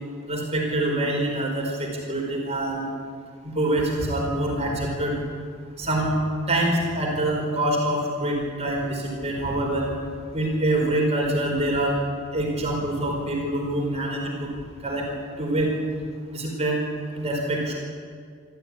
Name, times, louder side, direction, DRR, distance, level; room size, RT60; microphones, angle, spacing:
voice 1, 0.2-2.9 3.5-5.2 5.8-6.2 6.5-9.9 10.3-12.0 12.3-14.5 14.8-15.1 15.4-15.7 16.3-16.8 17.1-17.7, right 1 dB, 30° right, 0 dB, 4.6 m, -25 dB
27.0 x 13.5 x 9.7 m, 2.1 s
head